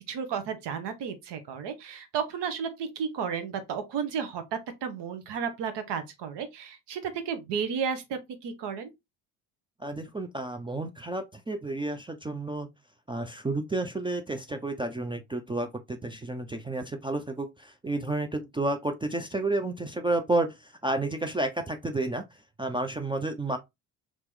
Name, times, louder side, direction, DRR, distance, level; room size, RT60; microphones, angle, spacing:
voice 1, 0.1-8.9, right 7 dB, 55° right, 1.0 m, -33 dB
voice 2, 9.8-12.7 13.1-22.2 22.6-23.6, right 2 dB, 10° right, 0.4 m, -31 dB
2.9 x 2.9 x 3.7 m
hypercardioid pair, 50°, 49 cm